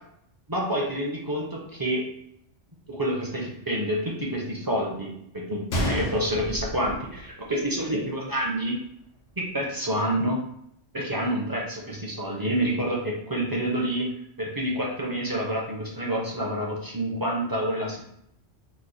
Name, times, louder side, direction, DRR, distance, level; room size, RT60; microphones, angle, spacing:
voice 1, 0.5-2.0 2.9-8.7 9.5-10.4 10.9-14.1 14.4-18.0, right 1 dB, 25° right, -3 dB, 0.5 m, -28 dB
Gunshot gunfire, 5.7-7.7 8.0-8.1 8.8-9.0, equal, 80° left, 1.0 m, -31 dB
3.1 x 2.1 x 3.9 m, 0.72 s
omnidirectional pair, 1.2 m